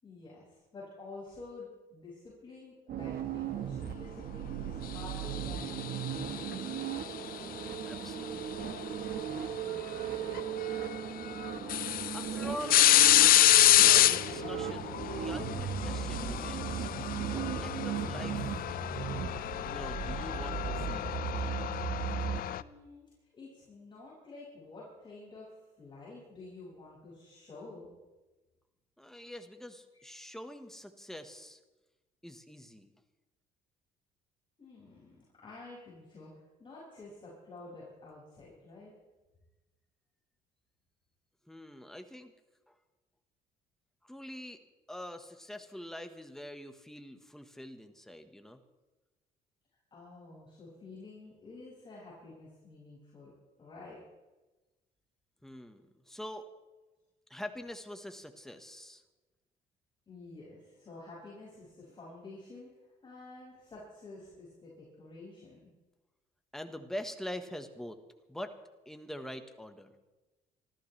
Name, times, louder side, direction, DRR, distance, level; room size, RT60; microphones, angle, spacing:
voice 1, 0.0-7.0 9.6-11.0 22.6-23.0 23.3-25.5 25.8-27.9 34.6-35.2 35.4-38.9 49.9-53.3 53.6-54.0 60.1-62.7 63.0-65.7, left 3 dB, 30° left, -7 dB, 6.4 m, -50 dB
sound 1, 2.9-22.4, right 9 dB, 60° right, 1.5 m, -37 dB
sound 2, 5.4-6.8 8.6-8.8 10.4-10.5 10.9-11.0 11.4-22.6, left 13 dB, 60° left, 0.6 m, -27 dB
voice 2, 7.8-8.7 12.1-12.9 13.7-16.9 17.3-18.7 19.6-21.2 29.0-31.6 32.2-32.9 41.5-42.3 42.7-42.8 44.0-44.6 44.9-48.6 55.4-56.5 57.3-59.0 66.5-68.0 68.3-68.5 68.8-69.9, left 1 dB, ahead, 6 dB, 1.4 m, -44 dB
25.5 x 14.0 x 3.4 m, 1.1 s
cardioid pair, 110°, 17 cm